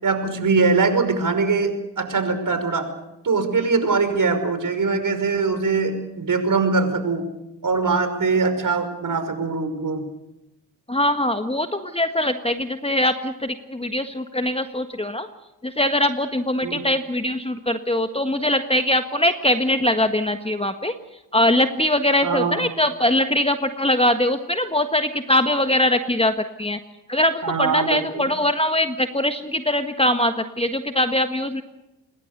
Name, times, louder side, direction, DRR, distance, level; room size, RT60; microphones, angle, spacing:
voice 1, 0.0-2.9 3.2-7.3 7.6-10.0 16.6-16.8 22.2-22.7 27.4-28.3, right 4 dB, 45° right, 8 dB, 5.8 m, -22 dB
voice 2, 10.9-15.3 15.6-20.9 21.3-26.8 27.1-31.6, left 1 dB, 10° left, 8 dB, 1.6 m, -22 dB
26.5 x 21.5 x 6.8 m, 0.95 s
hypercardioid pair, 45°, 46 cm